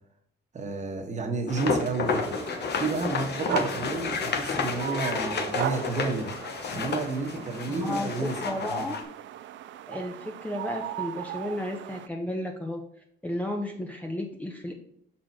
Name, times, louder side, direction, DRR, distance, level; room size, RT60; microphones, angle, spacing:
voice 1, 0.5-2.3 2.8-6.3 6.7-8.9, right 3 dB, 35° right, 3 dB, 1.2 m, -31 dB
sound 1, 1.5-9.0, left 4 dB, 60° left, 1.0 m, -31 dB
sound 2, 2.1-12.1, right 12 dB, 70° right, 0.4 m, -38 dB
voice 2, 7.7-8.9 9.9-12.8 13.2-14.7, left 1 dB, 10° left, 2 dB, 0.7 m, -33 dB
6.0 x 4.3 x 4.5 m, 0.71 s
cardioid pair, 90°, 20 cm